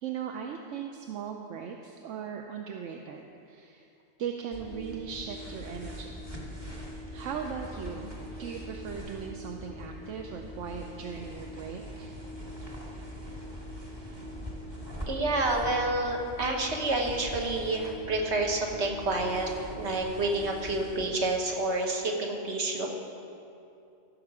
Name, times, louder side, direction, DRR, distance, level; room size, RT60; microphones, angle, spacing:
voice 1, 0.0-3.9 4.2-6.2 7.1-8.1 8.4-12.1, right 7 dB, 80° right, 3 dB, 1.0 m, -38 dB
sound 1, 4.5-21.1, equal, 20° right, 1.5 m, -42 dB
voice 2, 15.1-22.9, right 2 dB, 60° right, 1 dB, 1.5 m, -29 dB
15.5 x 6.5 x 4.8 m, 2.7 s
omnidirectional pair, 1.3 m